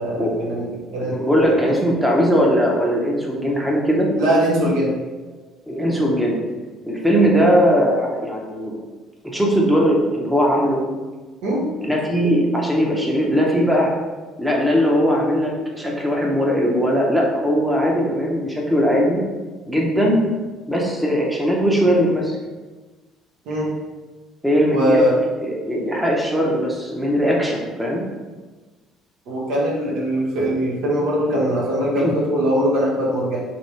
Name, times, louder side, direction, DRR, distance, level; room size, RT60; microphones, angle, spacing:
voice 1, 0.0-1.2 1.7-1.8 4.2-4.9 11.4-11.7 23.5-23.7 24.7-25.2 29.3-33.4, equal, 60° right, -4 dB, 0.8 m, -21 dB
voice 2, 1.0-4.1 5.7-6.4 6.8-8.8 9.2-10.8 11.8-13.9 14.4-19.2 19.7-20.2 20.7-22.4 24.4-25.0 25.4-28.0 32.0-32.1, equal, 5° right, -2 dB, 0.8 m, -19 dB
3.6 x 2.6 x 3.2 m, 1.3 s
figure-of-eight pair, 50°, 0 cm